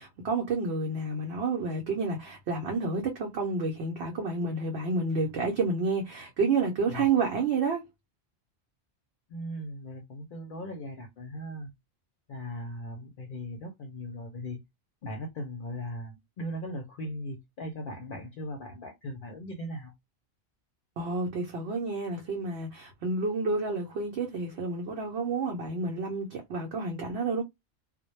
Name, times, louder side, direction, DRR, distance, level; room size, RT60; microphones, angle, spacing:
voice 1, 0.0-7.8 21.0-27.4, right 4 dB, 70° right, 0.8 m, -30 dB
voice 2, 6.9-7.2 9.3-11.7 12.3-14.6 15.0-19.9, equal, 60° left, 0.7 m, -38 dB
2.2 x 2.0 x 2.9 m
omnidirectional pair, 1.1 m